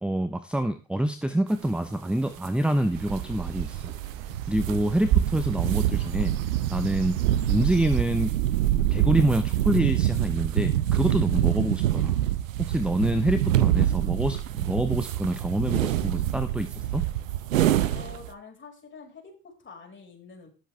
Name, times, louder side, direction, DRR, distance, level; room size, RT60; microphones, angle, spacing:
voice 1, 0.0-3.9 4.5-6.3 6.7-7.2 7.5-8.4 8.9-12.2 12.6-17.0, right 1 dB, 5° right, 11 dB, 0.9 m, -26 dB
sound 1, 1.6-1.7 2.4-2.5 3.1-18.3, right 12 dB, 75° right, 0.9 m, -26 dB
sound 2, 2.9-8.0, right 11 dB, 55° right, 1.2 m, -31 dB
voice 2, 17.9-20.5, left 5 dB, 30° left, 2 dB, 5.4 m, -46 dB
17.5 x 7.5 x 3.4 m, 0.32 s
figure-of-eight pair, 60°, 40 cm